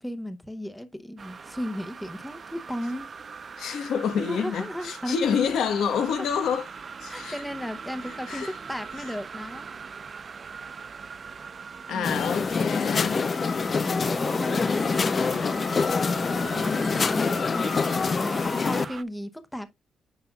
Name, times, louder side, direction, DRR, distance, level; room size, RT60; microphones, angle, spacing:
voice 1, 0.0-3.1 4.2-5.2 6.2-6.3 7.1-9.7 11.9-12.2 13.7-17.8 18.2-19.7, equal, 5° left, 0.8 m, -35 dB
sound 1, 1.2-19.0, right 5 dB, 40° right, 0.5 m, -41 dB
voice 2, 3.6-6.7 7.0-7.4 8.1-8.5 9.0-9.1 11.9-13.2, left 7 dB, 90° left, 1.3 m, -28 dB
sound 2, 12.0-18.8, left 5 dB, 35° left, 0.5 m, -25 dB
9.6 x 5.6 x 2.3 m
cardioid pair, 140°, 0 cm